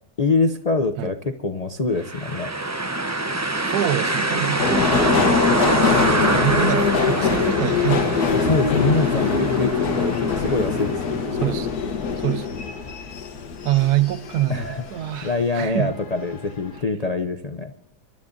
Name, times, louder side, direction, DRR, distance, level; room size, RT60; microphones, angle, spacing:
voice 1, 0.2-2.5 8.3-11.3 14.5-14.8 15.2-17.7, left 3 dB, 55° left, 0.4 m, -24 dB
sound 1, 2.0-11.8, right 2 dB, 25° right, 0.3 m, -25 dB
voice 2, 3.6-5.4 6.3-8.5 11.4-11.7 12.2-12.5 13.6-15.9, right 13 dB, 80° right, 1.3 m, -25 dB
sound 2, 3.7-9.8, right 3 dB, 60° right, 1.9 m, -44 dB
Subway metro underground, 4.6-15.3 15.7-16.4 16.7-16.8, left 5 dB, 80° left, 1.6 m, -23 dB
29.5 x 12.5 x 2.6 m
omnidirectional pair, 1.6 m